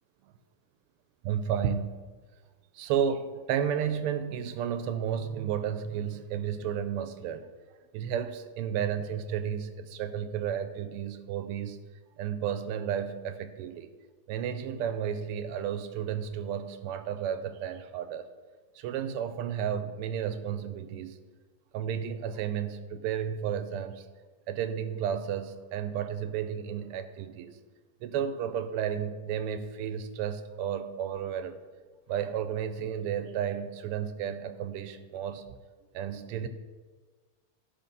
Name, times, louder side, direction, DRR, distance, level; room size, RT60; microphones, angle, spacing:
voice 1, 1.2-2.1 2.7-7.4 7.9-11.8 12.2-13.9 14.3-18.2 18.8-21.1 21.7-24.1 24.5-27.6 28.0-31.5 32.1-35.5 35.9-36.5, right 8 dB, 85° right, 11 dB, 1.5 m, -32 dB
10.5 x 4.0 x 5.3 m, 1.4 s
omnidirectional pair, 2.4 m